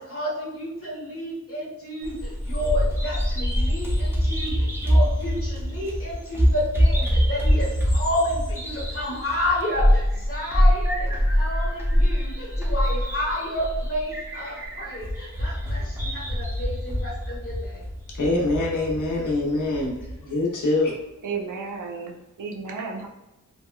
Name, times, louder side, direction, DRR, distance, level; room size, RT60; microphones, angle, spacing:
voice 1, 0.0-17.8, left 1 dB, 45° left, -5 dB, 1.0 m, -30 dB
Bird vocalization bird call bird song, 2.0-20.2, equal, 10° right, 0.6 m, -24 dB
voice 2, 18.1-20.0 20.2-20.9, left 2 dB, 80° left, -3 dB, 0.8 m, -24 dB
voice 3, 21.2-23.1, right 5 dB, 85° right, 1 dB, 0.5 m, -33 dB
3.4 x 2.1 x 2.2 m, 0.98 s
wide cardioid pair, 65°, 31 cm